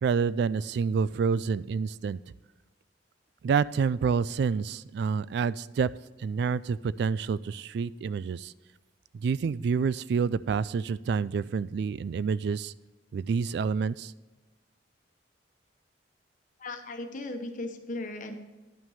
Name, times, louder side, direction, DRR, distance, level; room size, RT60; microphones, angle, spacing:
voice 1, 0.0-2.2 3.4-5.9 6.2-8.5 9.2-12.7 13.1-14.1, right 5 dB, 65° right, 19 dB, 0.3 m, -28 dB
voice 2, 16.6-18.3, left 2 dB, 45° left, 6 dB, 1.1 m, -37 dB
11.0 x 6.0 x 5.6 m, 1.2 s
head